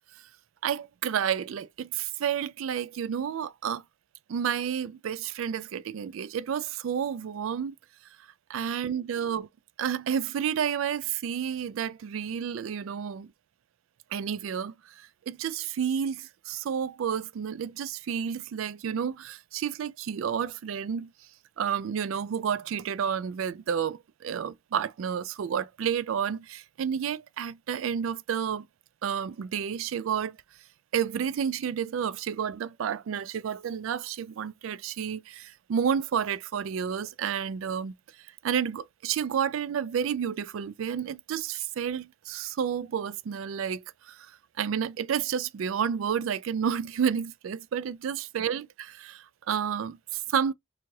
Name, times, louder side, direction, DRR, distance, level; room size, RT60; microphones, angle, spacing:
voice 1, 0.6-3.8 4.3-7.8 8.5-9.5 9.8-13.3 14.1-21.1 21.6-28.7 29.0-30.4 30.9-37.9 38.4-44.3 44.6-50.5, right 8 dB, 85° right, 0.3 m, -30 dB
4.5 x 2.4 x 2.7 m
head